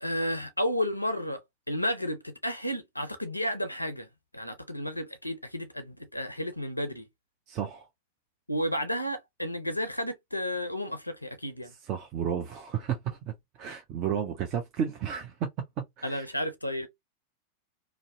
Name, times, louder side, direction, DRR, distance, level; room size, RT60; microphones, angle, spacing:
voice 1, 0.0-1.4 1.7-4.1 4.3-7.1 8.5-11.7 16.0-16.9, equal, 85° left, 0.4 m, -32 dB
voice 2, 7.5-7.8 11.9-13.3 13.6-15.3 15.8-16.2, right 8 dB, 40° right, 0.5 m, -32 dB
2.6 x 2.0 x 2.5 m
figure-of-eight pair, 90°, 0 cm